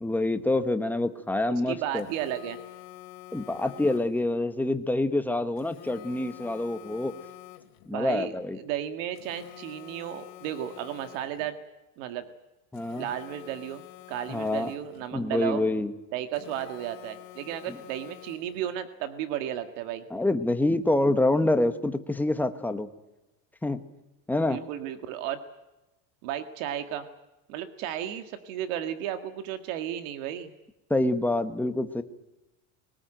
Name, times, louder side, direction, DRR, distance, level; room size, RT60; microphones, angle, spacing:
voice 1, 0.0-2.0 3.3-7.1 7.9-8.6 12.7-13.0 14.3-14.7 15.1-15.9 17.7-17.8 20.1-22.9 23.6-23.8 24.3-24.6 30.9-32.0, left 2 dB, 5° left, 8 dB, 1.1 m, -26 dB
voice 2, 1.5-2.6 7.9-8.3 8.6-11.6 12.0-12.3 12.9-15.6 16.1-20.0 24.5-25.4 26.2-27.1 27.5-30.5, right 11 dB, 85° right, 8 dB, 1.9 m, -34 dB
Telephone, 2.0-4.3 5.6-7.9 9.2-11.5 12.7-15.1 16.3-18.7, left 15 dB, 65° left, 2.5 m, -48 dB
22.0 x 19.5 x 9.0 m, 1.0 s
cardioid pair, 160°, 38 cm